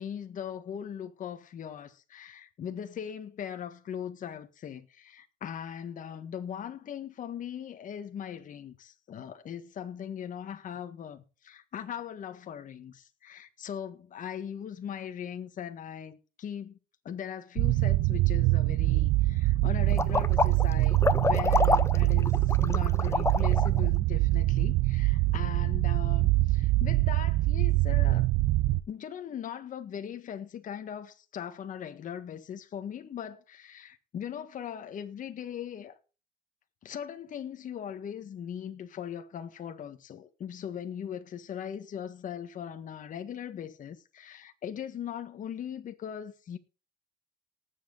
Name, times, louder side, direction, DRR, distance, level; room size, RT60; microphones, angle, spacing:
voice 1, 0.0-16.8 17.0-28.3 28.9-36.0 36.8-46.6, left 9 dB, 50° left, 1.6 m, -39 dB
sound 1, 17.6-28.8, right 18 dB, 85° right, 0.7 m, -24 dB
sound 2, 19.9-23.8, left 3 dB, 15° left, 0.9 m, -27 dB
19.0 x 7.8 x 4.0 m
cardioid pair, 110°, 17 cm